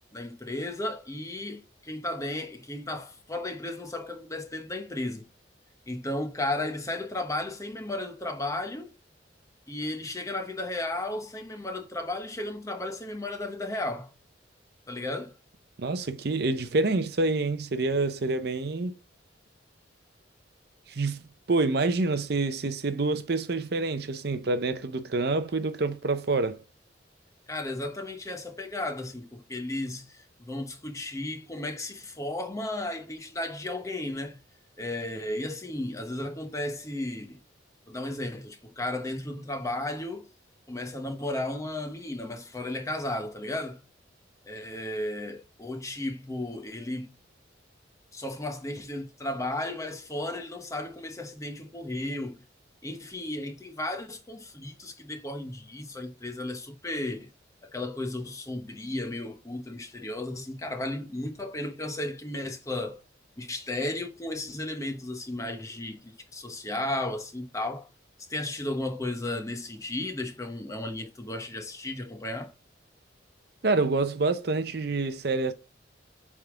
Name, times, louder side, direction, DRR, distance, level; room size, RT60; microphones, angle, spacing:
voice 1, 0.1-5.3 5.9-9.0 9.7-14.1 14.9-15.4 27.5-34.4 34.8-37.4 37.9-40.3 40.7-43.8 44.4-47.1 48.1-52.4 52.8-57.3 57.6-63.0 63.4-67.9 68.3-72.5, left 1 dB, 15° left, 1.0 m, -34 dB
voice 2, 15.8-18.9 20.9-21.2 21.5-26.6 73.6-75.5, right 3 dB, 60° right, 0.6 m, -27 dB
8.1 x 3.6 x 3.6 m
head